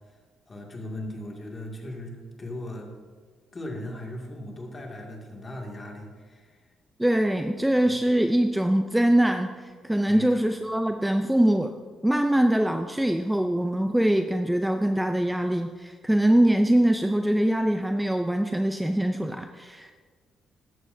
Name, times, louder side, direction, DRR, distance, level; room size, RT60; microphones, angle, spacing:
voice 1, 0.5-2.9 3.5-6.6 7.9-8.0 10.1-10.4, left 1 dB, 30° left, 0 dB, 2.3 m, -38 dB
voice 2, 7.0-11.7 12.0-19.9, right 1 dB, 5° right, 6 dB, 0.5 m, -23 dB
14.5 x 11.0 x 2.7 m, 1.5 s
cardioid pair, 90°, 0 cm